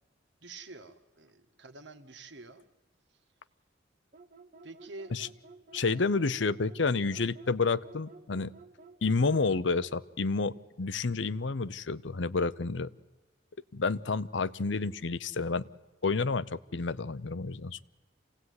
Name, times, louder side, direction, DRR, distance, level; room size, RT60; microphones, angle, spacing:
voice 1, 0.4-2.6 4.6-5.1, right 3 dB, 65° right, 8 dB, 1.8 m, -47 dB
sound 1, 4.1-10.0, right 3 dB, 45° right, 1.0 m, -53 dB
voice 2, 5.7-8.5 9.0-12.9 13.7-15.6 16.0-17.8, left 4 dB, 70° left, 16 dB, 0.7 m, -30 dB
27.5 x 17.5 x 9.6 m, 1.2 s
head